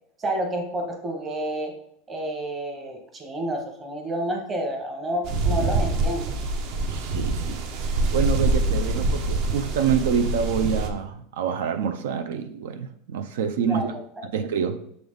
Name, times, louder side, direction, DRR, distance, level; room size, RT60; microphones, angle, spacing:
voice 1, 0.2-1.7 2.1-6.3 13.6-14.2, right 1 dB, 15° right, 2 dB, 0.9 m, -30 dB
sound 1, 5.2-10.9, right 2 dB, 45° right, 0.6 m, -25 dB
voice 2, 6.9-13.9 14.2-14.8, right 7 dB, 85° right, 8 dB, 0.5 m, -27 dB
6.8 x 3.9 x 3.5 m, 0.69 s
supercardioid pair, 175°, 0 cm